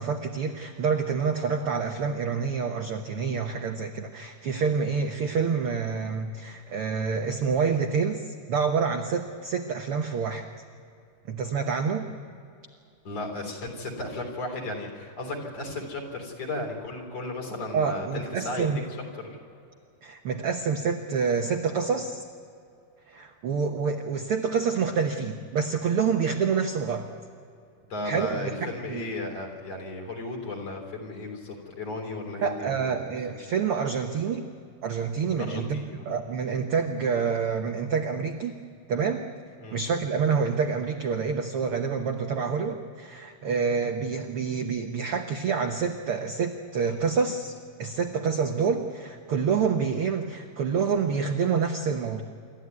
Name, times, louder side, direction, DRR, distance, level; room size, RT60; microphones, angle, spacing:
voice 1, 0.0-10.4 11.3-12.1 17.7-18.8 20.0-22.2 23.1-27.1 28.0-29.0 32.4-34.4 34.8-38.6 38.9-39.2 39.7-47.5 47.8-52.2, right 5 dB, 80° right, 4 dB, 1.2 m, -27 dB
voice 2, 13.0-18.7 19.2-19.4 27.9-33.3 35.4-36.0 39.6-39.8, left 2 dB, 45° left, 1 dB, 4.6 m, -35 dB
27.0 x 13.5 x 9.5 m, 2.5 s
omnidirectional pair, 4.1 m